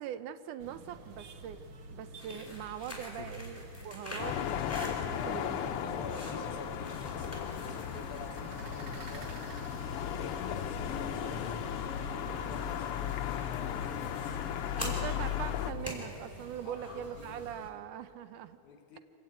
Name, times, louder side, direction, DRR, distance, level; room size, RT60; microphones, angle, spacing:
voice 1, 0.0-1.6 1.9-4.4 4.8-5.7 14.8-18.6, right 10 dB, 75° right, 12 dB, 2.1 m, -42 dB
sound 1, 0.6-17.7, right 2 dB, 55° right, 1.7 m, -50 dB
sound 2, 2.0-17.6, left 1 dB, 5° left, 4.6 m, -47 dB
sound 3, 4.2-15.7, left 9 dB, 90° left, 1.2 m, -36 dB
voice 2, 5.2-10.0 10.4-11.7 12.2-15.2 16.6-16.9 17.2-17.4 18.6-19.0, left 4 dB, 70° left, 5 dB, 3.2 m, -47 dB
26.0 x 16.0 x 9.1 m, 3.0 s
omnidirectional pair, 3.8 m